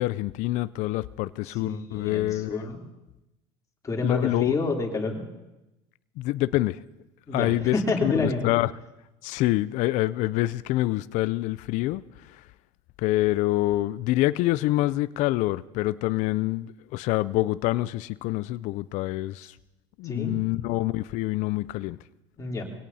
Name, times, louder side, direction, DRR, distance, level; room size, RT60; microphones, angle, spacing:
voice 1, 0.0-2.7 4.0-4.5 6.2-6.8 7.3-7.8 8.0-8.7 9.2-12.4 13.0-19.6 20.0-22.0, left 17 dB, 60° left, 0.4 m, -26 dB
voice 2, 1.6-2.8 3.8-5.2 7.3-8.5 20.0-20.3 22.4-22.6, left 3 dB, 25° left, 3.1 m, -29 dB
23.0 x 17.5 x 2.8 m
supercardioid pair, 90°, 14 cm